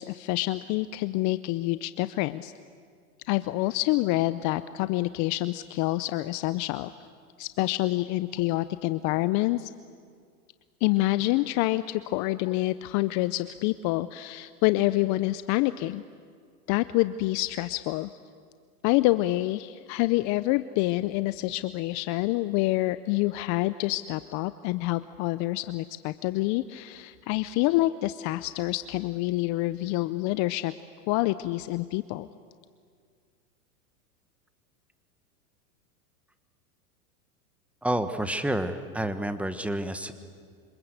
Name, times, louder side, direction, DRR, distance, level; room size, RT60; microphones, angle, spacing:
voice 1, 0.0-2.5 3.3-6.9 7.4-9.7 10.8-16.0 16.7-18.1 18.8-30.7 31.1-32.3, left 18 dB, 40° left, 14 dB, 0.7 m, -27 dB
voice 2, 37.8-40.1, right 1 dB, 5° right, 10 dB, 1.5 m, -29 dB
27.0 x 25.5 x 8.2 m, 2.1 s
hypercardioid pair, 120°, 46 cm